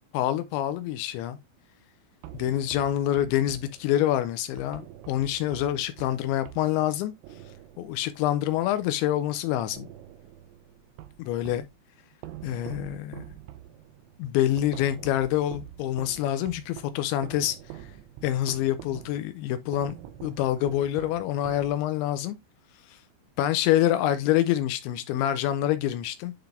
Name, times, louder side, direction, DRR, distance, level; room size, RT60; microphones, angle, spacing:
voice 1, 0.1-1.4 2.3-7.1 7.8-9.9 11.2-11.7 12.4-13.3 14.2-17.6 18.2-19.9 20.2-22.4 22.9-23.0 23.4-26.3, left 12 dB, 85° left, 2.6 m, -26 dB
sound 1, 2.2-9.4 9.7-11.8 12.2-22.1, right 12 dB, 80° right, 3.0 m, -46 dB
10.0 x 3.9 x 3.4 m
omnidirectional pair, 5.8 m